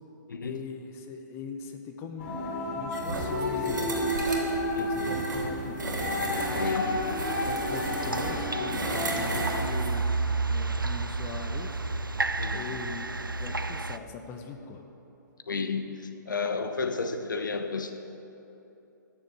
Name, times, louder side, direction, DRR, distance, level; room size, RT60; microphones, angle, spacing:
voice 1, 0.4-2.4 2.7-4.1 4.8-5.8 6.4-10.0 10.5-11.8 12.5-14.8, left 5 dB, 25° left, 5 dB, 1.0 m, -41 dB
sound 1, 2.2-9.7, left 1 dB, 40° left, 2.9 m, -31 dB
sound 2, 2.9-9.9, right 3 dB, 65° right, 2.8 m, -35 dB
voice 2, 4.7-5.2 6.5-7.0 12.4-12.7 15.5-18.0, left 4 dB, 70° left, 7 dB, 1.0 m, -32 dB
sound 3, 6.4-14.0, right 3 dB, 90° right, 0.5 m, -32 dB
14.5 x 7.0 x 8.5 m, 3.0 s
figure-of-eight pair, 125°, 11 cm